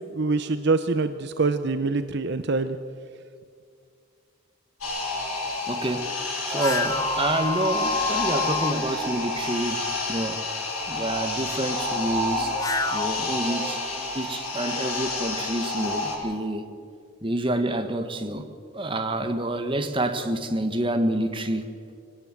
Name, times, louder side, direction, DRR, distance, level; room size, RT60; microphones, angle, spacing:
voice 1, 0.1-2.8, right 3 dB, 50° right, 0.7 m, -25 dB
sound 1, 4.8-16.2, left 2 dB, 85° left, 7.4 m, -29 dB
voice 2, 5.7-6.2 6.5-10.4 10.9-12.6 12.9-13.8 14.1-16.7 17.2-18.4 18.7-21.7, right 1 dB, 25° right, 1.4 m, -28 dB
sound 2, 6.5-8.8 12.3-14.0, left 4 dB, 15° left, 0.6 m, -29 dB
25.0 x 18.0 x 7.7 m
head